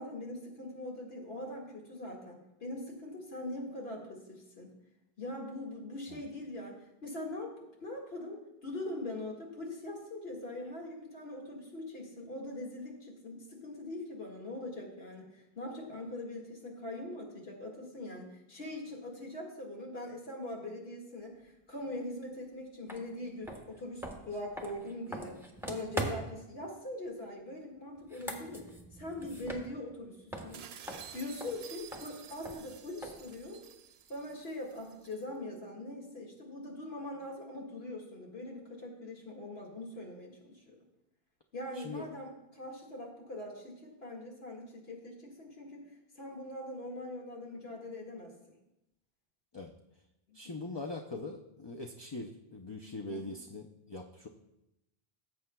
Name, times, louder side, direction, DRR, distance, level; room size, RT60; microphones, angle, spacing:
voice 1, 0.0-4.7 5.2-7.5 7.8-25.4 25.7-28.6 28.9-30.6 31.1-33.6 34.1-40.8 41.5-45.8 46.2-48.3 50.3-50.4 53.1-53.3, left 1 dB, 75° left, -1 dB, 2.0 m, -42 dB
sound 1, 22.9-23.0 23.4-26.5 28.0-30.0 30.3-33.4, right 1 dB, ahead, 1.0 m, -42 dB
sound 2, 30.5-35.2, right 9 dB, 80° right, 0.8 m, -51 dB
voice 2, 41.7-42.0 49.5-49.7 50.3-54.3, left 2 dB, 35° left, 3 dB, 0.4 m, -42 dB
17.0 x 7.6 x 2.2 m, 0.90 s
omnidirectional pair, 1.0 m